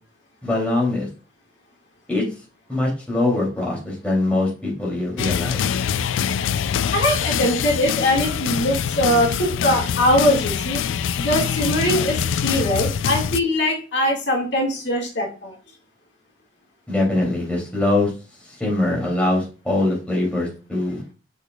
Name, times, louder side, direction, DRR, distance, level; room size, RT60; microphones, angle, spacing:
voice 1, 0.4-1.1 2.1-2.2 2.7-5.6 16.9-18.1 18.4-21.0, left 2 dB, 5° left, -3 dB, 2.8 m, -22 dB
sound 1, 5.2-13.4, left 8 dB, 85° left, 0.3 m, -24 dB
voice 2, 6.9-10.8 11.2-15.6, left 1 dB, 65° left, -1 dB, 2.0 m, -21 dB
6.6 x 6.6 x 2.3 m, 0.35 s
head